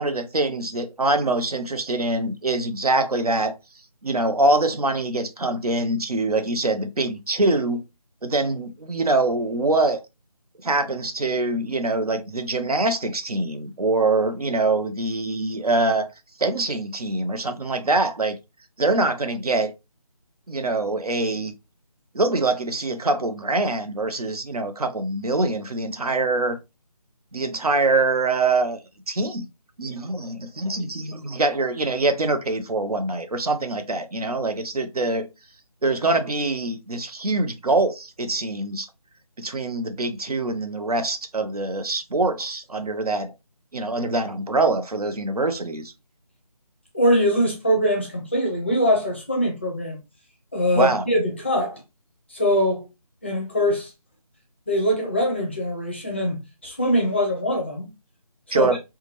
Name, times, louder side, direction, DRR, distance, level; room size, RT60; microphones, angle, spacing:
voice 1, 0.0-3.5 4.0-7.8 8.2-10.0 10.6-16.1 16.4-18.4 18.8-19.7 20.5-21.5 22.1-26.6 27.3-28.8 29.1-29.5 29.8-35.3 35.8-38.9 39.4-43.3 43.7-45.9 50.7-51.0 58.5-58.8, right 2 dB, 75° right, 0.6 m, -24 dB
voice 2, 46.9-50.0 50.5-51.8 52.3-52.8 53.2-53.9 54.7-57.9 58.5-58.7, equal, 20° left, 0.5 m, -22 dB
3.6 x 2.2 x 2.9 m
figure-of-eight pair, 160°, 20 cm